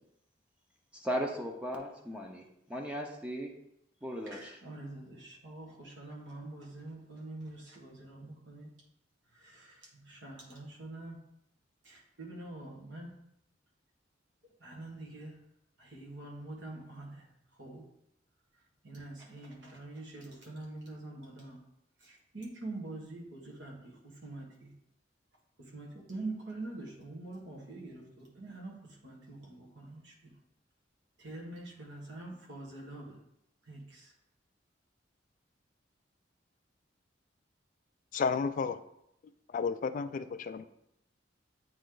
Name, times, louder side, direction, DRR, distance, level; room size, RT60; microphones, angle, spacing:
voice 1, 1.0-2.4 2.7-3.5 4.0-4.5, equal, 5° right, 1 dB, 0.6 m, -36 dB
voice 2, 4.3-8.7 9.4-9.8 10.1-11.2 11.8-13.1 14.6-15.3 15.8-17.2 17.6-17.8 18.8-21.6 22.0-23.9 24.2-24.7 25.7-28.8 29.0-30.3 31.2-33.2 33.7-34.1, right 2 dB, 70° right, -2 dB, 1.6 m, -45 dB
voice 3, 38.1-38.8 39.5-40.6, left 5 dB, 45° left, 12 dB, 0.3 m, -32 dB
8.5 x 3.1 x 3.9 m, 0.79 s
head